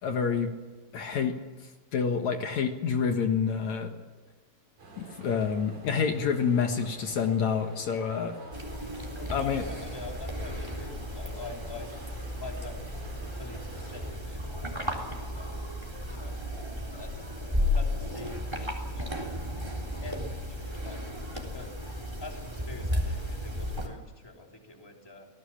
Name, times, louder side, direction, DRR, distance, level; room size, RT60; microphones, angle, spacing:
voice 1, 0.0-0.5 0.9-1.4 1.9-3.9 5.0-8.3 9.3-9.6, left 6 dB, 65° left, 5 dB, 2.7 m, -28 dB
sound 1, 4.8-14.1, right 3 dB, 75° right, 6.5 m, -49 dB
sound 2, 8.5-23.9, left 1 dB, 10° right, 3.4 m, -34 dB
voice 2, 9.1-11.9 12.4-12.9 13.4-15.5 16.1-16.4 16.8-17.2 17.7-18.5 18.9-19.4 20.0-21.0 21.3-21.9 22.2-25.3, left 3 dB, 10° left, 1 dB, 2.9 m, -46 dB
25.5 x 18.5 x 7.4 m, 1.3 s
omnidirectional pair, 3.6 m